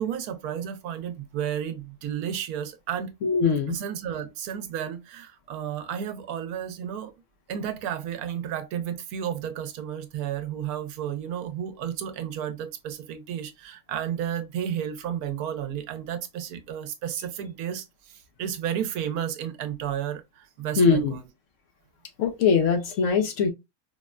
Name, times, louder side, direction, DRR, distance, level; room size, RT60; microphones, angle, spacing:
voice 1, 0.0-3.1 3.7-7.1 7.5-21.2, right 9 dB, 80° right, 1.1 m, -32 dB
voice 2, 3.2-3.8 20.8-21.1 22.2-23.5, left 5 dB, 65° left, 0.9 m, -21 dB
4.1 x 2.1 x 2.2 m
omnidirectional pair, 1.5 m